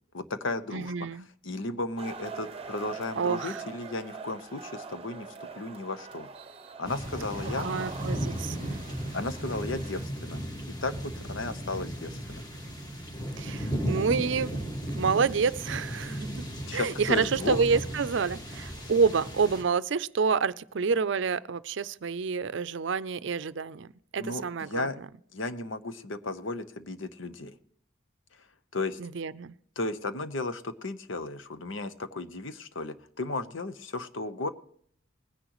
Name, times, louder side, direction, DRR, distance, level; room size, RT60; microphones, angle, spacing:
voice 1, 0.1-1.1 1.4-6.3 6.8-7.7 9.1-10.4 10.8-12.4 16.7-17.6 24.2-25.0 25.3-27.5 28.7-29.0 29.8-34.5, left 2 dB, 75° left, 1.0 m, -34 dB
voice 2, 0.7-1.3 3.2-3.6 7.6-8.8 13.4-14.5 14.9-16.3 16.7-25.1 29.0-29.5, right 5 dB, 65° right, 0.5 m, -28 dB
sound 1, 2.0-10.0, right 4 dB, 30° right, 0.8 m, -43 dB
July Thundershower, 6.9-19.6, equal, 20° left, 1.8 m, -35 dB
20.0 x 10.5 x 3.1 m
head